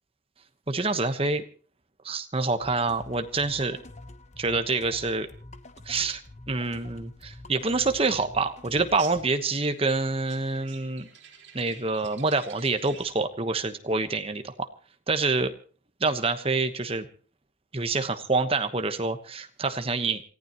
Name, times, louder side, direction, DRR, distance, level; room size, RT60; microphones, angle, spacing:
voice 1, 0.7-1.4 2.0-3.8 4.4-5.3 5.9-6.2 6.5-11.1 11.5-14.7 15.1-15.5 16.0-17.1 17.7-20.2, right 3 dB, 30° right, 8 dB, 1.1 m, -27 dB
sound 1, 2.6-9.3, left 2 dB, 35° left, 1.0 m, -47 dB
sound 2, 8.7-13.2, right 8 dB, 70° right, 4.4 m, -49 dB
28.0 x 15.0 x 3.0 m, 0.39 s
head